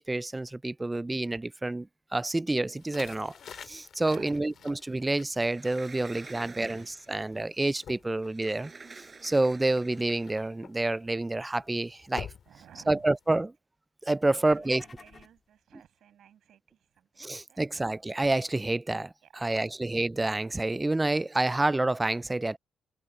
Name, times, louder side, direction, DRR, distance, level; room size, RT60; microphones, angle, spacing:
voice 1, 0.0-8.7 9.2-12.3 12.9-13.5 14.0-14.8 17.2-22.6, right 2 dB, 15° right, 0.5 m, -28 dB
sound 1, 2.7-13.4, left 8 dB, 60° left, 2.4 m, -50 dB
voice 2, 4.0-4.7 6.3-7.0 12.5-13.1 14.3-17.8 19.2-19.8, right 10 dB, 70° right, 7.1 m, -55 dB
Sliding door, 5.3-7.3 8.2-10.4, right 4 dB, 30° right, 6.9 m, -49 dB
sound 2, 14.4-15.5, left 4 dB, 35° left, 2.4 m, -53 dB
cardioid pair, 90°, 0 cm